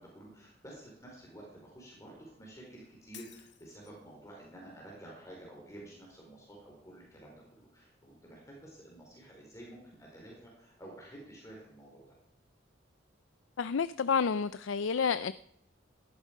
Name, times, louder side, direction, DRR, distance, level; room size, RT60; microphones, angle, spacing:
voice 1, 0.0-12.2, right 1 dB, 15° left, -2 dB, 4.5 m, -51 dB
Shatter, 3.1-4.1, left 12 dB, 60° left, 1.2 m, -54 dB
voice 2, 13.6-15.3, left 6 dB, 80° left, 15 dB, 0.5 m, -29 dB
18.5 x 13.0 x 5.3 m, 0.78 s
head